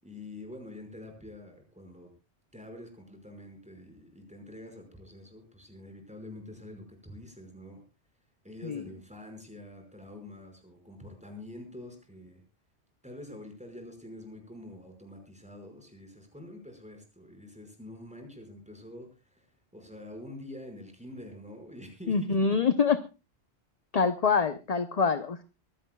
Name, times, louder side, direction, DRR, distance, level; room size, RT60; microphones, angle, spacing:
voice 1, 0.0-2.1 2.5-7.8 8.4-12.4 13.0-22.6, left 1 dB, 5° right, 4 dB, 5.3 m, -46 dB
voice 2, 22.1-23.0 23.9-25.4, left 5 dB, 40° left, 10 dB, 0.8 m, -25 dB
23.5 x 16.0 x 2.3 m, 0.29 s
omnidirectional pair, 1.1 m